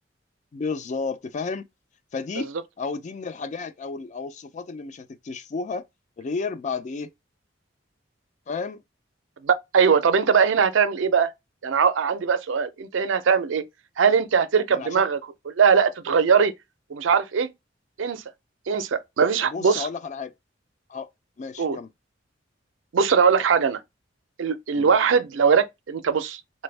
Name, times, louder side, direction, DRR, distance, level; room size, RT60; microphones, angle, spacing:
voice 1, 0.5-1.7 2.1-2.5 2.8-5.9 6.2-7.1 8.5-8.8 14.7-15.0 19.5-20.3 20.9-21.1 21.4-21.9 24.7-24.9, left 4 dB, 40° left, 0.3 m, -32 dB
voice 2, 9.4-11.3 11.6-13.6 14.0-15.2 15.5-16.5 16.9-17.5 18.0-18.2 18.7-19.9 21.6-21.8 22.9-23.8 24.4-26.6, right 6 dB, 90° right, 0.5 m, -21 dB
3.3 x 2.1 x 3.2 m
head